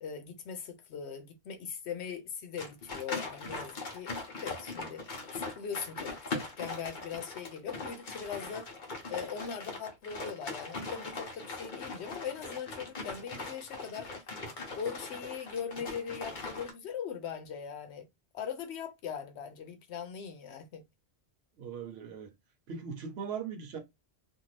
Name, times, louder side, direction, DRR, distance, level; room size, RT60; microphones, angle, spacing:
voice 1, 0.0-4.1 4.4-5.0 5.3-8.7 9.1-14.1 14.8-18.1 18.3-20.8, left 7 dB, 85° left, 0.9 m, -40 dB
sound 1, 2.6-16.7, left 3 dB, 50° left, 0.9 m, -40 dB
voice 2, 21.6-22.3 22.7-23.8, right 6 dB, 75° right, 1.0 m, -39 dB
2.6 x 2.4 x 3.1 m
omnidirectional pair, 1.1 m